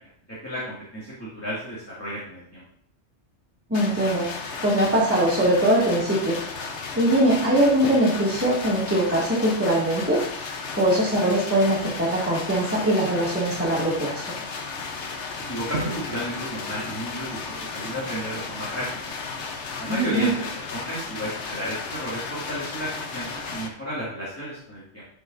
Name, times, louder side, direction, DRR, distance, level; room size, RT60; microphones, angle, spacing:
voice 1, 0.3-2.6 15.5-18.9 19.8-25.0, equal, 10° left, -9 dB, 2.2 m, -33 dB
sound 1, 3.7-23.7, left 4 dB, 75° left, 1.2 m, -34 dB
voice 2, 3.7-6.4 6.6-10.2 10.7-14.2 19.9-20.3, right 1 dB, 10° right, -7 dB, 2.2 m, -22 dB
Drum, 15.7-17.9, right 1 dB, 75° right, 1.4 m, -36 dB
11.0 x 5.6 x 2.6 m, 0.65 s
omnidirectional pair, 1.2 m